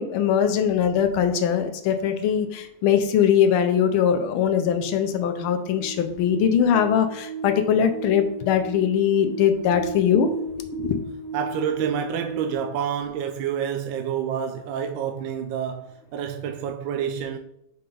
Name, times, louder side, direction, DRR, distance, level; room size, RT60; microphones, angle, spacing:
voice 1, 0.0-10.3 10.8-10.9, left 8 dB, 85° left, 1.5 m, -21 dB
sound 1, 4.5-12.6, right 3 dB, 40° right, 1.9 m, -35 dB
voice 2, 11.3-17.4, right 8 dB, 75° right, 1.3 m, -28 dB
5.6 x 5.4 x 3.8 m
omnidirectional pair, 2.2 m